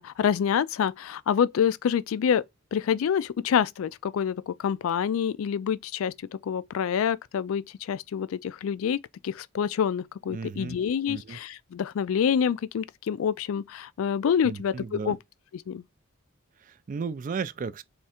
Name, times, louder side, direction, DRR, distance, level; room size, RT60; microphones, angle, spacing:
voice 1, 0.0-2.4 2.7-15.2 15.5-15.8, left 7 dB, 65° left, 0.3 m, -27 dB
voice 2, 10.3-10.8 11.1-11.4 14.4-15.2 16.6-17.8, right 5 dB, 40° right, 0.3 m, -34 dB
3.6 x 3.2 x 4.2 m
head